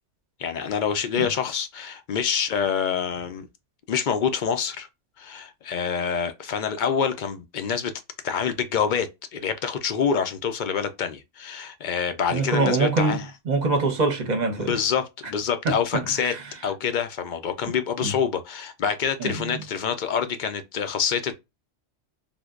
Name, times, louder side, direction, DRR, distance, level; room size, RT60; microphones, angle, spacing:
voice 1, 0.4-3.5 3.9-4.9 5.2-7.9 8.2-13.2 14.6-16.3 16.6-21.4, left 7 dB, 55° left, 0.5 m, -26 dB
voice 2, 12.3-13.2 13.5-14.7 15.6-15.7 16.3-16.4 18.0-18.1 19.2-19.6, right 3 dB, 45° right, 0.8 m, -24 dB
3.5 x 2.7 x 2.4 m
omnidirectional pair, 1.2 m